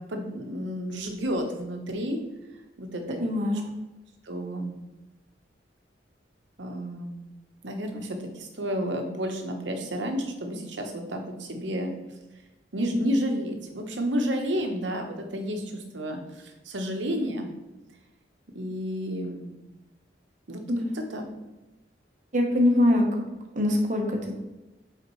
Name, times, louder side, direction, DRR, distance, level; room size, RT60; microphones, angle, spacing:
voice 1, 0.0-2.2 2.8-3.2 4.2-4.8 6.6-7.3 7.6-11.9 12.7-17.6 18.5-19.6 20.5-20.6 20.9-21.2, equal, 90° right, 4 dB, 1.0 m, -31 dB
voice 2, 3.2-3.7 20.7-20.9 22.3-23.1 23.5-24.4, left 1 dB, 45° right, 1 dB, 1.1 m, -23 dB
8.0 x 4.3 x 3.1 m, 1.1 s
head